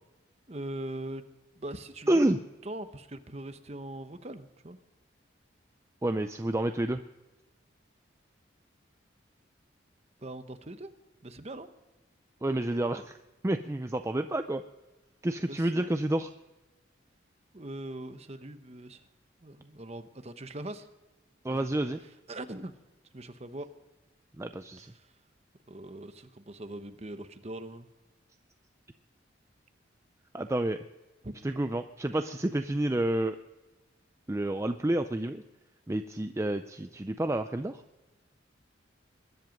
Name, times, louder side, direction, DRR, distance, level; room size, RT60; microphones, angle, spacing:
voice 1, 0.5-1.2 1.5-2.2 2.6-4.8 10.2-10.9 11.2-11.7 15.5-15.9 17.5-19.1 19.4-20.9 21.5-21.7 22.3-22.7 23.1-23.7 24.8-25.1 25.7-27.9 31.2-31.3, right 1 dB, 35° right, 9 dB, 1.0 m, -41 dB
voice 2, 2.1-2.4 6.0-7.0 12.4-13.2 13.4-14.6 15.2-16.3 21.4-22.0 24.4-24.9 30.3-30.8 31.4-33.4 34.3-35.4 35.9-37.8, right 1 dB, 15° right, 8 dB, 0.4 m, -29 dB
21.5 x 10.5 x 5.2 m, 1.1 s
head